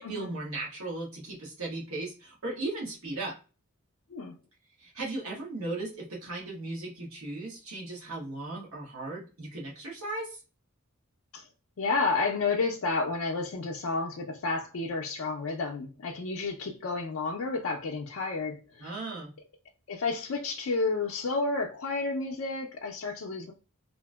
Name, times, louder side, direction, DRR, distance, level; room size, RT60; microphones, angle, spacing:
voice 1, 0.0-3.3 4.8-10.4 18.8-19.3, right 2 dB, 75° right, 1.1 m, -37 dB
voice 2, 11.8-18.9 19.9-23.5, left 3 dB, 65° left, 0.4 m, -31 dB
2.8 x 2.5 x 2.2 m
head